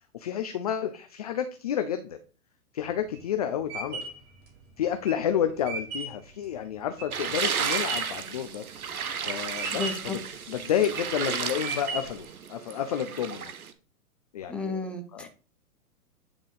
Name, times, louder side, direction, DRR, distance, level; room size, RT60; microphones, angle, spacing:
voice 1, 0.1-2.2 2.7-4.1 4.8-8.7 9.2-13.5 14.3-14.8 15.1-15.3, left 9 dB, 30° left, 8 dB, 0.4 m, -30 dB
sound 1, 2.8-8.3 8.7-9.2 9.5-10.2 10.7-11.2 11.6-12.3, right 4 dB, 30° right, 2.0 m, -36 dB
sound 2, 7.1-13.7, right 7 dB, 75° right, 1.1 m, -33 dB
voice 2, 9.7-10.2 14.5-15.3, left 3 dB, ahead, 4 dB, 0.9 m, -33 dB
8.8 x 3.6 x 4.9 m, 0.37 s
figure-of-eight pair, 110°, 44 cm